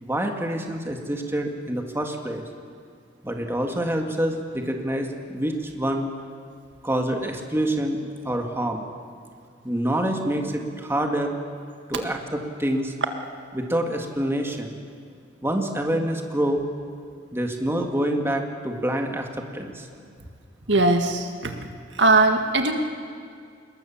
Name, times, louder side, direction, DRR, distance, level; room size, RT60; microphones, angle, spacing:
voice 1, 0.0-2.4 3.2-6.1 6.8-8.0 8.2-8.9 9.6-11.4 11.9-12.9 13.5-14.7 15.4-16.7 17.3-19.3 19.5-19.9, right 1 dB, 15° right, 3 dB, 2.0 m, -26 dB
voice 2, 20.7-21.5 22.0-22.7, right 2 dB, 90° right, 5 dB, 1.9 m, -19 dB
26.5 x 21.0 x 7.3 m, 2.2 s
head